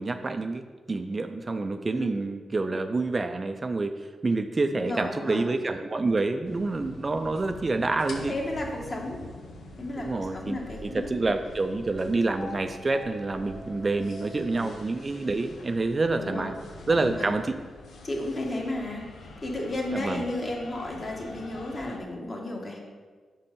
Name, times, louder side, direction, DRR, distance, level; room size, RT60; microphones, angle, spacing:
voice 1, 0.0-3.9 4.2-8.3 10.0-16.5 16.9-17.5 19.9-20.3, right 3 dB, 35° right, 8 dB, 0.3 m, -28 dB
voice 2, 4.7-5.4 8.3-9.3 9.8-11.1 14.5-14.8 16.2-16.5 17.0-17.3 18.0-22.8, left 1 dB, 40° left, 0 dB, 1.2 m, -33 dB
sound 1, 6.4-22.0, left 2 dB, 80° left, 0.8 m, -45 dB
5.4 x 4.2 x 5.2 m, 1.5 s
cardioid pair, 95°, 0 cm